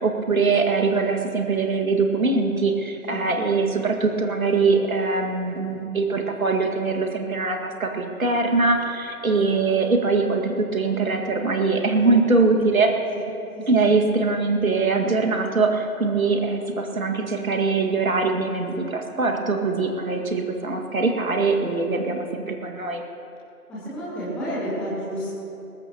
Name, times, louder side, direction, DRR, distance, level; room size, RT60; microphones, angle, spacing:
voice 1, 0.0-12.9 13.7-23.0, right 3 dB, 60° right, 3 dB, 2.2 m, -22 dB
voice 2, 3.1-3.5 23.7-25.3, equal, ahead, -9 dB, 1.2 m, -30 dB
20.5 x 19.0 x 3.0 m, 2.8 s
figure-of-eight pair, 155°, 46 cm